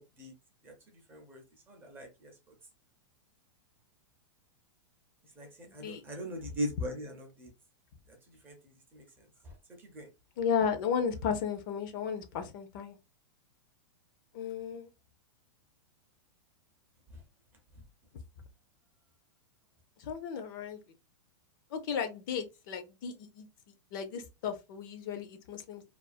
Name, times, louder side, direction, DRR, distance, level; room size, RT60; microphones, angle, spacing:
voice 1, 1.1-2.3 5.4-7.5 8.1-8.6 8.9-9.1 9.4-9.5 9.8-10.1 17.1-17.2, equal, 15° right, 0.5 m, -40 dB
voice 2, 10.4-13.0 14.3-14.9 20.0-20.8 21.7-23.5 23.9-25.8, left 7 dB, 45° left, 0.5 m, -34 dB
2.4 x 2.3 x 2.4 m
supercardioid pair, 160°, 15 cm